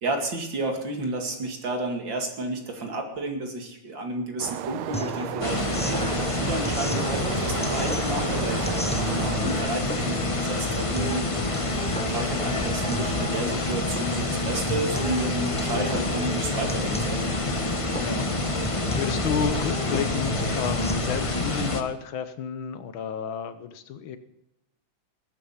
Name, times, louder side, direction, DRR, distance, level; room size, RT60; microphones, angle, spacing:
voice 1, 0.0-11.6 12.0-17.2, right 2 dB, 60° right, 3 dB, 2.9 m, -32 dB
sound 1, 4.4-9.4, right 12 dB, 85° right, 1.5 m, -34 dB
sound 2, 4.9-20.9, equal, 10° left, 0.4 m, -35 dB
sound 3, 5.4-21.8, left 2 dB, 25° left, 0.8 m, -27 dB
voice 2, 9.3-9.6 17.9-18.3 18.9-24.2, left 7 dB, 75° left, 12 dB, 1.7 m, -31 dB
19.5 x 9.2 x 5.6 m, 0.86 s
omnidirectional pair, 2.3 m